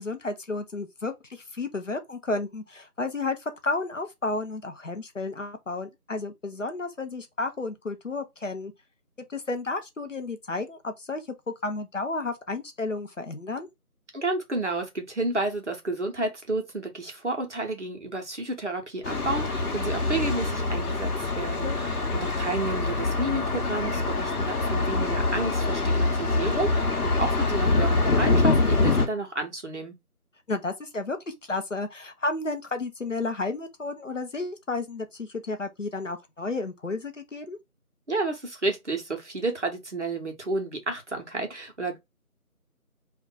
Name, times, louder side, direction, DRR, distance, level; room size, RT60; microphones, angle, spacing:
voice 1, 0.0-8.7 9.3-11.2 11.6-13.7 21.6-22.0 30.5-37.6, left 3 dB, 55° left, 0.6 m, -32 dB
voice 2, 14.1-29.9 38.1-42.0, right 2 dB, 50° right, 0.8 m, -31 dB
Thunder, 19.0-29.1, left 3 dB, 75° left, 0.9 m, -25 dB
2.4 x 2.2 x 3.8 m
figure-of-eight pair, 170°, 45 cm